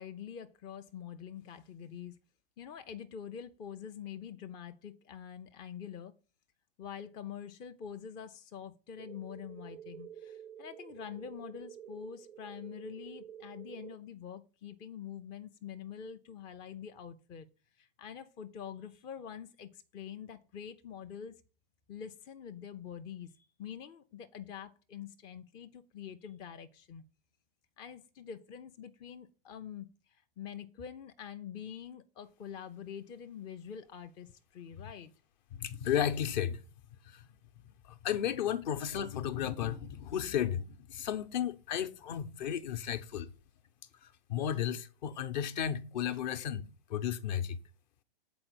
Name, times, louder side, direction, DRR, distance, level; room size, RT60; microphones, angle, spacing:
voice 1, 0.0-2.2 2.6-6.1 6.8-17.5 17.8-21.4 21.9-27.0 27.8-35.1, left 8 dB, 15° left, 0.4 m, -46 dB
sound 1, 9.0-14.0, right 9 dB, 90° right, 0.6 m, -49 dB
voice 2, 35.5-36.6 37.1-37.2 37.9-43.3 44.0-46.6 46.9-47.6, left 9 dB, 50° left, 0.8 m, -34 dB
7.8 x 4.4 x 6.1 m
hypercardioid pair, 130°, 30 cm